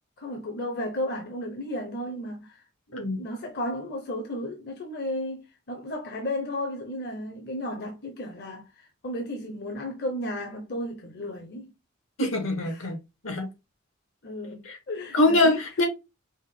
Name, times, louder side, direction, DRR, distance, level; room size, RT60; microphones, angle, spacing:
voice 1, 0.2-2.6 3.2-11.7 12.6-12.9 14.2-15.6, left 1 dB, 50° left, 0.7 m, -34 dB
voice 2, 12.2-13.0 13.2-13.5 14.6-14.8 15.1-15.9, left 2 dB, 80° left, 1.4 m, -23 dB
5.3 x 2.1 x 3.3 m
head